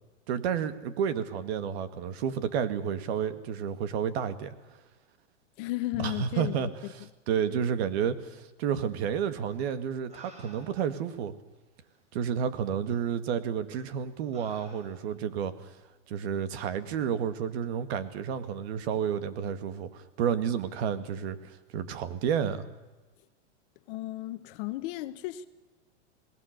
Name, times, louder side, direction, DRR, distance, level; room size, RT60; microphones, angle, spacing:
voice 1, 0.3-4.5 6.0-6.7 7.3-11.3 12.1-15.7 16.1-22.7, right 8 dB, 60° right, 12 dB, 2.2 m, -31 dB
voice 2, 5.6-6.7 7.5-7.7 23.9-25.5, left 16 dB, 50° left, 11 dB, 1.2 m, -34 dB
sound 1, 9.5-9.6 10.1-11.0 11.9-12.0 12.9-13.0 13.7-13.9 14.3-15.3 16.6-16.8, right 1 dB, 20° right, 4.4 m, -54 dB
26.5 x 19.5 x 6.8 m, 1.1 s
supercardioid pair, 140°, 36 cm